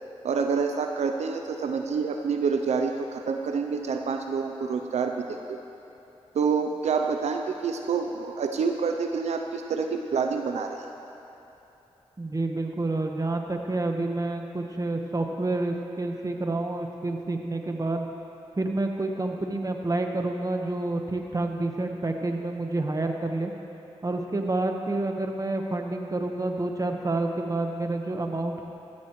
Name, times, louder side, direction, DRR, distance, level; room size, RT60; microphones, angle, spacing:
voice 1, 0.2-5.4 6.3-10.8, right 5 dB, 85° right, 4 dB, 0.5 m, -27 dB
voice 2, 12.2-18.1 18.6-23.5 24.0-28.6, right 2 dB, 30° right, 3 dB, 1.2 m, -28 dB
15.0 x 13.0 x 3.1 m, 2.9 s
cardioid pair, 50°, 11 cm